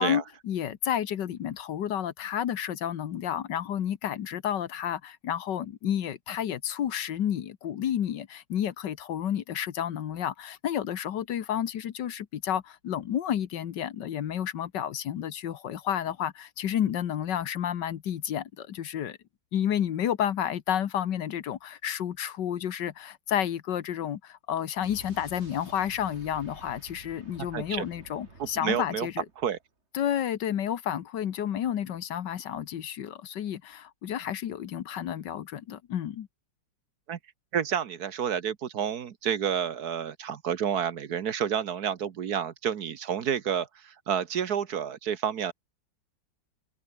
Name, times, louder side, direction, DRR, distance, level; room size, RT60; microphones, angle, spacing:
voice 1, 0.0-19.2 19.5-29.3 29.9-36.3, left 10 dB, 75° left, 1.7 m, -31 dB
Explosion, 24.8-29.6, right 3 dB, 35° right, 3.4 m, -50 dB
voice 2, 27.5-27.9 28.4-29.1 29.4-29.6 37.1-37.2 37.5-45.5, right 8 dB, 60° right, 1.6 m, -30 dB
omnidirectional pair, 2.0 m